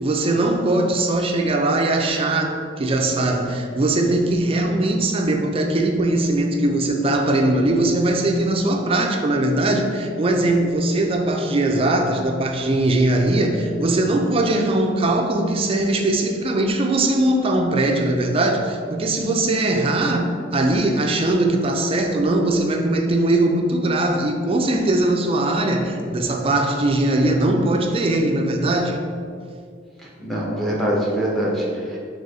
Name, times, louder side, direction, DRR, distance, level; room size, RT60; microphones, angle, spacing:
voice 1, 0.0-29.0, right 2 dB, 30° right, 3 dB, 0.4 m, -20 dB
voice 2, 30.0-32.0, right 1 dB, ahead, -4 dB, 0.8 m, -24 dB
3.8 x 3.4 x 4.0 m, 2.3 s
head